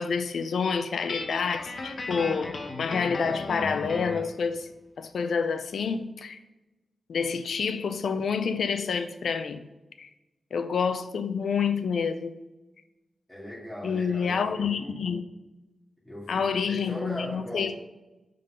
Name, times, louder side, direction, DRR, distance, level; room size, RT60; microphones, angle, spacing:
voice 1, 0.0-4.7 5.0-6.4 7.1-9.6 10.0-10.1 10.5-12.4 13.8-15.2 16.3-17.7, left 6 dB, 80° left, 0.4 m, -28 dB
Guitar, 1.1-4.3, left 3 dB, 65° left, 0.8 m, -35 dB
voice 2, 13.3-14.9 16.0-17.8, left 1 dB, 15° left, 1.9 m, -38 dB
5.4 x 3.8 x 5.4 m
supercardioid pair, 40°, 0 cm